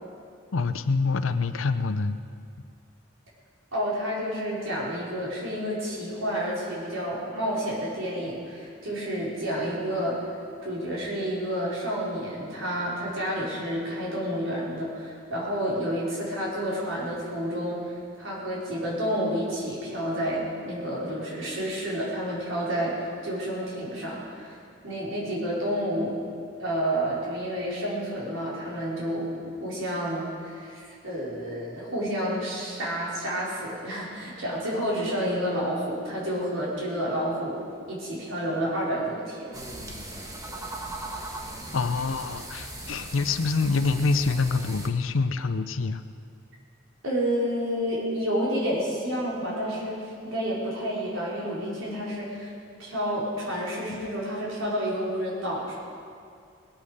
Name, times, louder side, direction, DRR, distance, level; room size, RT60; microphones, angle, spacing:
voice 1, 0.5-2.2 41.7-46.0, left 4 dB, 85° left, 11 dB, 0.6 m, -26 dB
voice 2, 3.7-10.2 10.6-24.6 24.8-26.2 26.6-29.3 29.6-37.6 37.9-39.6 47.0-52.5 52.8-55.8, equal, 85° right, -6 dB, 4.6 m, -30 dB
sound 1, 39.5-44.9, right 1 dB, 15° right, 1.3 m, -38 dB
20.0 x 8.9 x 6.6 m, 2.4 s
head